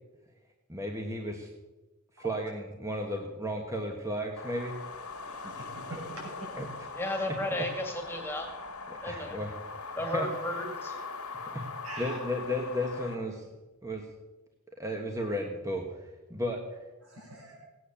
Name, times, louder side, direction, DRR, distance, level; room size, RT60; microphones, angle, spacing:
voice 1, 0.7-1.5 2.2-4.7 6.6-6.7 7.1-7.2 7.5-7.6 8.9-9.5 10.0-10.3 11.5-11.6 12.0-13.5 13.8-14.0 14.8-16.8, equal, 15° right, 2 dB, 1.3 m, -34 dB
sound 1, 4.4-13.1, left 4 dB, 75° left, 2.0 m, -41 dB
voice 2, 5.2-6.5 11.8-12.2 17.0-17.6, right 1 dB, 70° right, -2 dB, 7.0 m, -43 dB
voice 3, 6.9-8.5 9.0-9.4 10.0-11.0, left 1 dB, 10° left, 3 dB, 2.0 m, -33 dB
17.0 x 9.4 x 7.0 m, 1.1 s
head